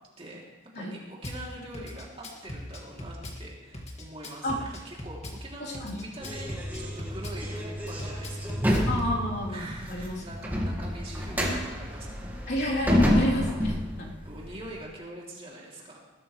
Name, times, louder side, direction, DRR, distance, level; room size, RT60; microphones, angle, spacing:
voice 1, 0.2-8.6 9.5-12.2 14.2-16.0, right 1 dB, 30° right, -3 dB, 3.0 m, -44 dB
Drum kit / Bass drum, 1.2-1.4 1.7-3.4 3.7-5.4 5.7-7.4 7.9-9.1, left 1 dB, 35° left, 2.2 m, -39 dB
voice 2, 5.6-6.0 8.9-10.2 12.5-14.1, left 1 dB, 55° left, -5 dB, 3.6 m, -30 dB
sound 1, 6.2-14.8, equal, 10° right, 2.0 m, -29 dB
20.0 x 13.0 x 3.3 m, 1.1 s
head